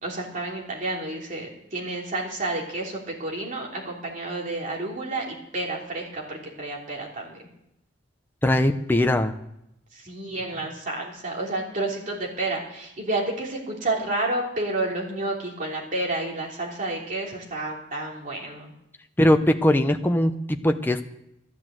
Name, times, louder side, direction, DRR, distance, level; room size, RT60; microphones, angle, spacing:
voice 1, 0.0-7.4 9.9-18.7, right 2 dB, 40° right, -2 dB, 3.3 m, -30 dB
voice 2, 8.4-9.3 19.2-21.0, left 1 dB, 10° left, 6 dB, 0.7 m, -20 dB
13.0 x 10.0 x 7.5 m, 0.81 s
head